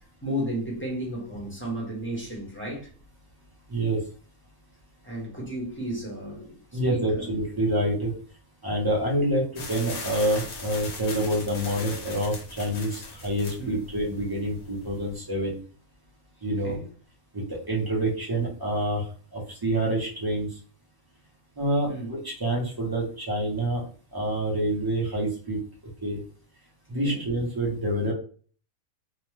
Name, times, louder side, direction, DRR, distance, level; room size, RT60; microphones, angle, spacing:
voice 1, 0.2-2.9 5.0-7.3 13.6-13.8 16.5-16.9 21.9-22.1 27.0-27.3, right 1 dB, 10° left, 0.7 m, -33 dB
voice 2, 6.7-8.1 8.6-15.6 16.4-16.8 17.3-19.0 19.3-20.5 21.6-23.8 24.1-25.6 26.0-26.2 26.9-28.1, right 1 dB, 30° right, 0.4 m, -27 dB
sound 1, 9.6-15.2, left 3 dB, 85° left, 1.3 m, -40 dB
2.8 x 2.1 x 3.1 m
omnidirectional pair, 1.5 m